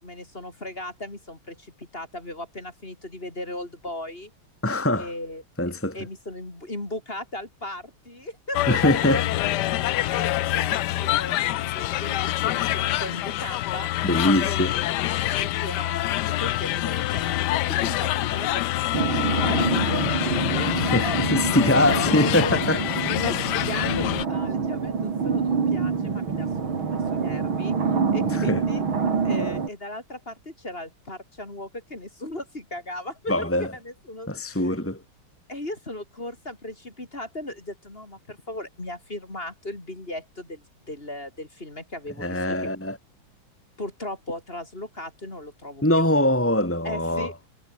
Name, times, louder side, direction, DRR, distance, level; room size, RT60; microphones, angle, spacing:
voice 1, 0.0-4.3 5.0-5.4 5.9-8.8 10.1-13.9 14.4-15.0 15.4-21.2 21.5-22.6 23.1-26.5 26.9-28.8 29.2-34.7 35.5-42.7 43.8-46.1 46.8-47.3, left 1 dB, 25° left, 3.9 m, -37 dB
voice 2, 4.6-5.1 5.6-6.0 8.7-9.4 14.0-14.8 20.7-22.8 23.0-23.1 28.4-28.6 33.3-33.7 34.3-35.0 42.2-43.0 45.8-47.3, left 1 dB, 5° left, 3.0 m, -23 dB
sound 1, 8.5-24.2, left 15 dB, 70° left, 1.0 m, -26 dB
sound 2, 18.9-29.7, right 5 dB, 65° right, 3.7 m, -26 dB
omnidirectional pair, 2.4 m